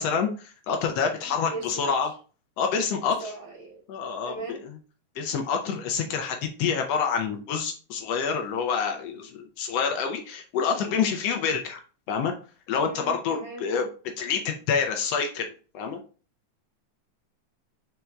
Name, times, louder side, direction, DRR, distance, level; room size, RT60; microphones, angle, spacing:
voice 1, 0.0-2.1 2.6-3.3 3.9-4.8 5.2-11.8 12.1-12.3 12.7-13.9 14.2-16.0, left 6 dB, 80° left, 4 dB, 1.4 m, -27 dB
voice 2, 1.2-1.9 3.2-3.8 4.2-4.6 12.8-13.7, right 3 dB, 5° right, -11 dB, 1.6 m, -39 dB
5.2 x 4.4 x 2.3 m, 0.37 s
omnidirectional pair, 3.5 m